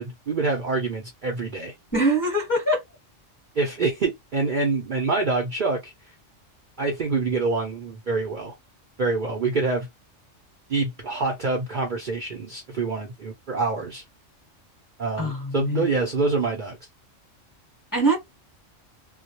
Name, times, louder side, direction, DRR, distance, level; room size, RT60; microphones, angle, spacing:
voice 1, 0.0-1.7 3.6-5.9 6.8-8.5 9.0-9.9 10.7-14.0 15.0-16.8, right 3 dB, 50° right, 0.6 m, -26 dB
voice 2, 1.9-2.8 15.2-15.8 17.9-18.2, right 1 dB, 15° left, 0.9 m, -23 dB
2.3 x 2.0 x 2.8 m
omnidirectional pair, 1.3 m